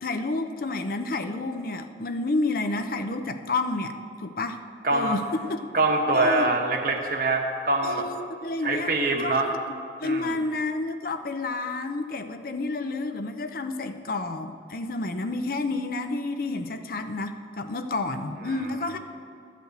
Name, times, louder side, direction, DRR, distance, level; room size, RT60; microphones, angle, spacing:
voice 1, 0.0-4.6 4.9-5.6 6.1-6.5 7.8-8.9 9.2-9.6 10.0-19.0, left 2 dB, 55° left, 8 dB, 0.6 m, -30 dB
voice 2, 4.8-5.2 5.7-8.1 8.6-9.5 10.0-10.3 18.5-18.7, right 2 dB, 50° right, 2 dB, 1.2 m, -24 dB
13.0 x 5.1 x 7.9 m, 2.4 s
head